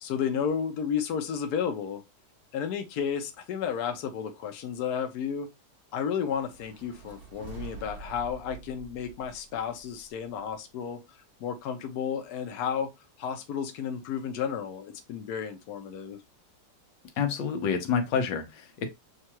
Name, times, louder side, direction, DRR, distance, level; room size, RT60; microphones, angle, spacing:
voice 1, 0.0-2.0 2.5-5.5 5.9-12.9 13.2-16.2, left 7 dB, 65° left, 1.2 m, -32 dB
sound 1, 6.3-10.5, right 4 dB, 35° right, 1.1 m, -46 dB
voice 2, 17.2-18.9, left 6 dB, 85° left, 1.6 m, -28 dB
6.5 x 2.4 x 2.9 m
omnidirectional pair, 1.9 m